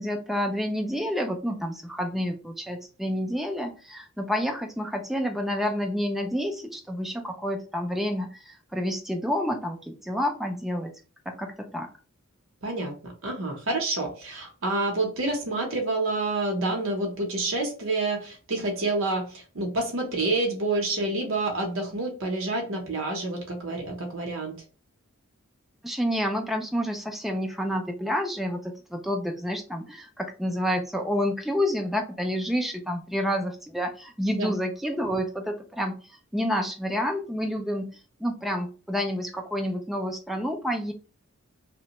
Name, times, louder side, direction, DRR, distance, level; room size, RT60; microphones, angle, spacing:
voice 1, 0.0-10.9 11.3-11.9 25.8-40.9, equal, ahead, 3 dB, 0.3 m, -29 dB
voice 2, 12.6-24.6 34.4-34.5, right 2 dB, 65° right, 0 dB, 0.7 m, -28 dB
2.8 x 2.1 x 2.8 m, 0.36 s
head